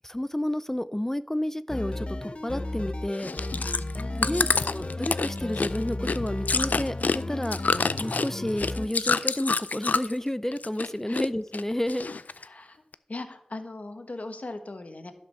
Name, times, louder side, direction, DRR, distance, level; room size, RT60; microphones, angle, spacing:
voice 1, 0.0-3.3 4.2-7.6 8.0-12.1, left 1 dB, 15° left, 15 dB, 0.4 m, -30 dB
sound 1, 1.7-8.9, left 2 dB, 45° left, 0.8 m, -34 dB
Chewing mastication, 3.1-10.2 10.5-11.3 11.5-12.4 12.9-13.0, left 4 dB, 80° left, 0.4 m, -27 dB
voice 2, 4.0-4.5 11.0-11.2 12.4-15.1, left 2 dB, 60° left, 7 dB, 1.3 m, -40 dB
11.5 x 5.2 x 6.9 m, 0.83 s
wide cardioid pair, 45°, 3 cm